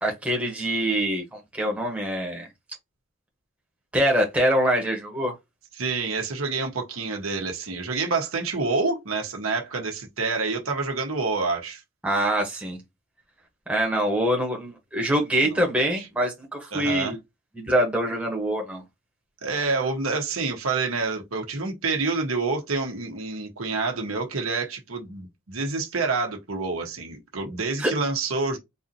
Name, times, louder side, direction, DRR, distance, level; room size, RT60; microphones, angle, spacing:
voice 1, 0.0-2.5 3.9-5.3 12.0-12.8 13.7-17.2 17.5-18.8 27.8-27.9, equal, 5° right, 1.0 m, -24 dB
voice 2, 5.8-11.8 15.4-15.6 15.9-16.1 16.7-17.1 19.4-28.6, right 3 dB, 75° right, 1.1 m, -28 dB
4.0 x 2.7 x 2.7 m
head